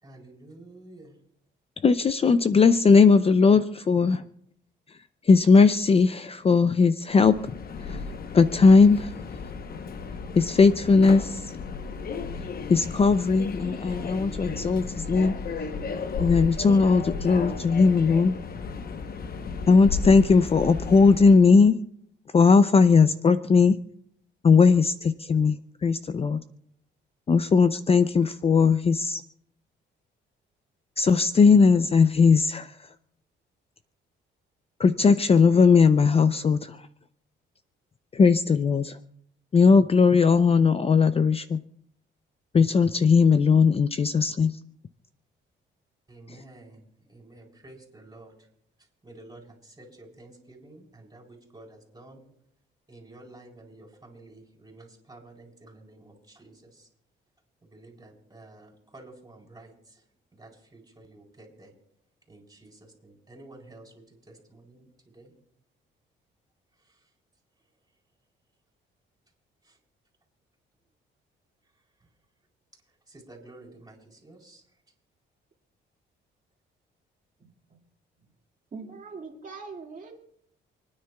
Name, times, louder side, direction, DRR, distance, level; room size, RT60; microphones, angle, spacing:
voice 1, 0.0-1.2 46.1-48.5 49.0-52.2 52.9-56.9 57.6-60.0 60.3-61.7 62.3-65.3 66.8-67.1 69.6-69.8 72.0-72.1 73.1-74.6, right 2 dB, 20° right, -1 dB, 4.0 m, -50 dB
voice 2, 1.8-4.2 5.2-8.0 8.3-9.1 10.4-11.5 12.7-15.4 16.2-18.3 19.7-21.8 22.3-23.8 24.4-26.4 27.3-29.2 31.0-32.8 34.8-36.9 38.1-39.0 39.5-41.6 42.5-44.6 46.3-46.4, left 5 dB, 30° left, 12 dB, 0.5 m, -19 dB
Subway metro underground, 7.1-21.5, left 5 dB, 50° left, 1.0 m, -34 dB
voice 3, 77.4-77.8 78.7-80.1, right 4 dB, 40° right, 1 dB, 2.1 m, -42 dB
29.0 x 9.7 x 2.3 m, 0.70 s
cardioid pair, 90°, 20 cm